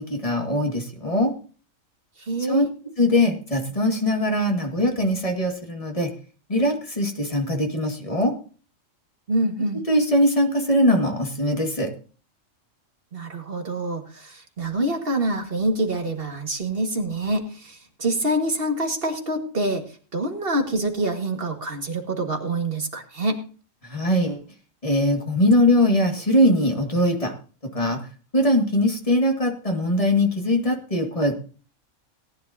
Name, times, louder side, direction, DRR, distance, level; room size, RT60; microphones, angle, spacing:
voice 1, 0.0-1.3 2.5-2.6 3.0-6.1 6.5-8.3 9.9-11.9 23.8-24.4 24.8-27.3 27.6-28.0 28.3-31.3, left 1 dB, 25° left, 3 dB, 2.0 m, -21 dB
voice 2, 2.2-2.7 9.3-9.8 13.1-19.8 20.1-23.4, right 1 dB, 45° right, 3 dB, 2.0 m, -26 dB
19.0 x 10.5 x 2.8 m, 0.38 s
omnidirectional pair, 1.3 m